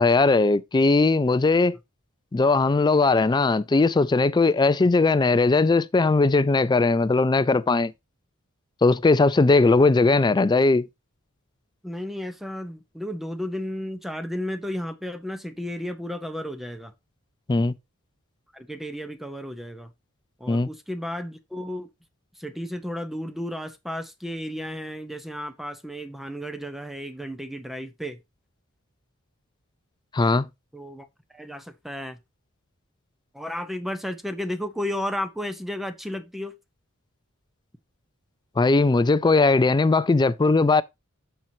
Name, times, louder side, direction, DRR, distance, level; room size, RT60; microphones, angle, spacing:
voice 1, 0.0-1.8 2.3-7.9 8.8-10.9 17.5-17.7 20.5-20.7 30.1-30.5 38.6-40.8, left 3 dB, 20° left, 0.3 m, -19 dB
voice 2, 11.8-16.9 18.5-19.9 20.4-21.9 22.4-28.2 30.7-31.1 31.3-32.2 33.3-36.5, left 1 dB, ahead, 0.7 m, -33 dB
13.5 x 4.5 x 2.7 m
head